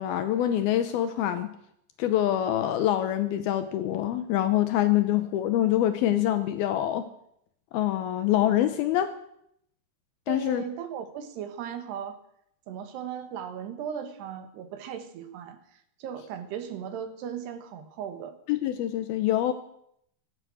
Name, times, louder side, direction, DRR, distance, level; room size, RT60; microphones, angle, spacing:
voice 1, 0.0-1.5 2.0-7.1 7.7-9.1 10.3-10.6 18.5-19.5, left 12 dB, 80° left, 10 dB, 2.4 m, -25 dB
voice 2, 10.3-12.2 12.7-18.4, right 8 dB, 75° right, 10 dB, 3.3 m, -37 dB
18.0 x 12.5 x 6.2 m, 0.73 s
omnidirectional pair, 5.0 m